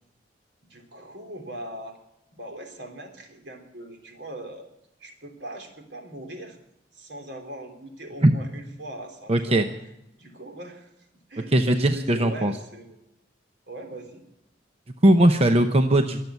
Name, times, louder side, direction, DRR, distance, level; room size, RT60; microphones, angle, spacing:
voice 1, 0.7-2.0 2.3-4.7 5.0-6.6 6.9-9.7 10.2-10.9 11.3-13.0 13.7-14.2, right 1 dB, 75° right, 4 dB, 3.1 m, -40 dB
voice 2, 9.3-9.6 11.5-12.5 15.0-16.2, right 1 dB, 35° right, 7 dB, 0.8 m, -19 dB
23.0 x 7.7 x 8.1 m, 0.88 s
head